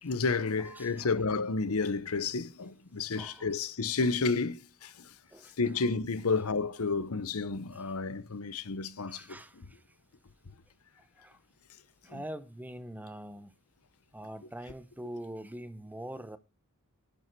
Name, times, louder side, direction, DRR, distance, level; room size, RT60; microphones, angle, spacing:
voice 1, 0.0-5.1 5.6-9.7 12.1-12.2, left 4 dB, 85° left, 0.9 m, -31 dB
voice 2, 0.6-1.1 3.2-3.5 5.3-5.5 9.1-9.8 11.2-11.4 12.0-13.5 14.1-16.4, right 1 dB, 10° right, 0.7 m, -43 dB
11.0 x 6.9 x 4.5 m
head